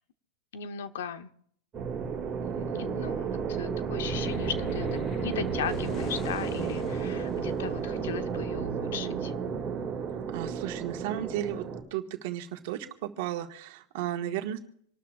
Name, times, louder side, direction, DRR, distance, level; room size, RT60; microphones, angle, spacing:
voice 1, 0.5-1.3 2.4-4.9 5.2-9.3, left 8 dB, 75° left, 10 dB, 1.0 m, -37 dB
sound 1, 1.7-11.8, right 6 dB, 15° right, 2.5 m, -32 dB
sound 2, 3.9-10.5, left 6 dB, 25° left, 0.7 m, -42 dB
voice 2, 10.3-11.6 11.9-14.6, right 12 dB, 50° right, 4 dB, 1.7 m, -34 dB
27.0 x 12.5 x 2.5 m, 0.67 s
supercardioid pair, 175°, 0 cm